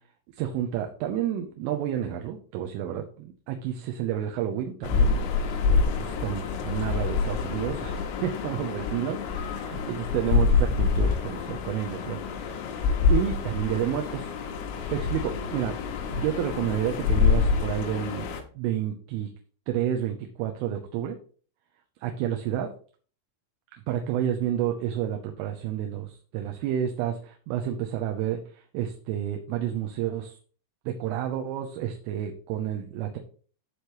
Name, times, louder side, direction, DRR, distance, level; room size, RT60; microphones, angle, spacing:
voice 1, 0.3-5.2 6.0-12.2 12.7-14.3 14.9-15.7 16.1-18.3 18.6-19.3 19.7-21.2 22.0-22.7 23.9-30.4 30.9-33.2, right 10 dB, 80° right, 3 dB, 3.4 m, -30 dB
sound 1, 4.8-18.4, left 5 dB, 90° left, 3.9 m, -26 dB
15.0 x 5.0 x 3.1 m, 0.42 s
omnidirectional pair, 5.8 m